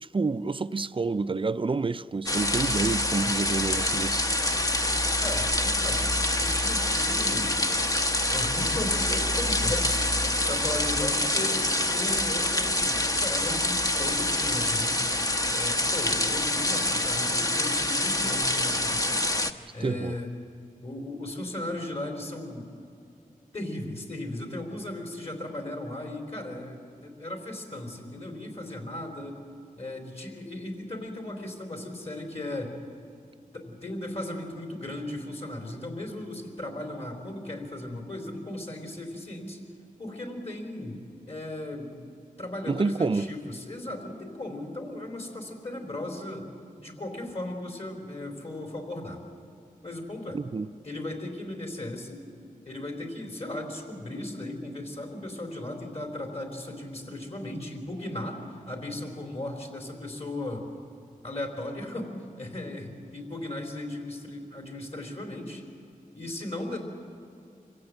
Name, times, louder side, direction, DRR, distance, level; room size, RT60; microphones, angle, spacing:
voice 1, 0.1-4.3 19.8-20.2 42.7-43.3 50.3-50.7, right 4 dB, 35° right, 0.5 m, -28 dB
sound 1, 2.3-19.5, left 1 dB, 25° left, 1.0 m, -26 dB
voice 2, 5.2-7.6 8.3-15.1 15.6-19.2 19.7-20.3 20.8-22.7 23.5-29.4 29.8-32.7 33.5-39.6 40.0-41.0 41.3-42.1 42.4-46.5 46.8-49.2 49.8-50.4 50.8-52.2 52.7-58.4 58.7-60.6 61.2-62.1 62.4-65.6 66.1-66.8, left 1 dB, 45° left, 4.1 m, -36 dB
26.5 x 16.5 x 7.9 m
wide cardioid pair, 75°, 15 cm